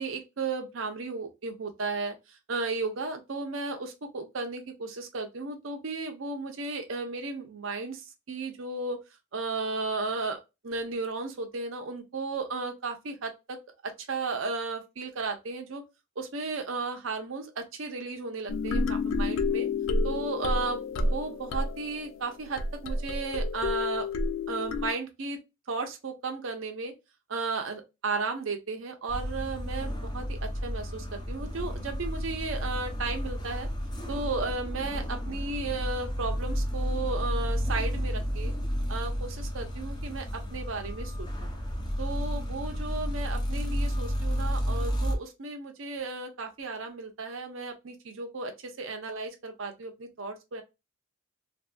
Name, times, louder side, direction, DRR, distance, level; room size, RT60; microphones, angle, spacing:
voice 1, 0.0-2.2 2.5-9.0 9.3-10.4 10.6-15.8 16.2-19.7 20.0-24.1 24.5-25.4 25.7-26.9 27.3-33.7 34.1-38.5 38.9-41.5 42.0-50.6, right 3 dB, 70° right, 0.7 m, -34 dB
sound 1, 18.5-24.9, left 3 dB, 65° left, 0.4 m, -29 dB
sound 2, 29.1-45.2, equal, 20° left, 0.6 m, -32 dB
2.7 x 2.6 x 2.2 m
head